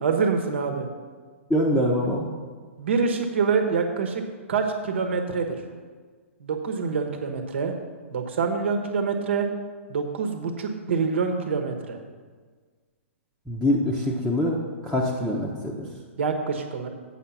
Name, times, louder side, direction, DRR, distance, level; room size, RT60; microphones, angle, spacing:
voice 1, 0.0-0.9 2.8-4.2 4.5-5.5 6.4-7.7 8.1-9.5 9.9-12.0 15.8-16.9, right 5 dB, 60° right, 4 dB, 1.2 m, -26 dB
voice 2, 1.5-2.3 13.5-15.9, left 1 dB, 5° left, -5 dB, 0.9 m, -24 dB
7.9 x 5.8 x 5.7 m, 1.5 s
figure-of-eight pair, 115°, 7 cm